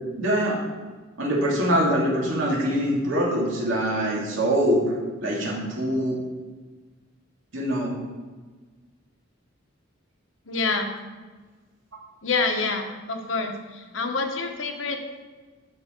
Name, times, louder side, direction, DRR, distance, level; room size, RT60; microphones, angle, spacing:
voice 1, 0.2-0.6 1.2-4.9 5.2-6.2 7.5-7.9, equal, 80° right, -4 dB, 2.7 m, -23 dB
voice 2, 10.5-10.9 12.2-15.0, left 3 dB, 80° left, 4 dB, 1.2 m, -27 dB
11.5 x 4.9 x 4.5 m, 1.4 s
head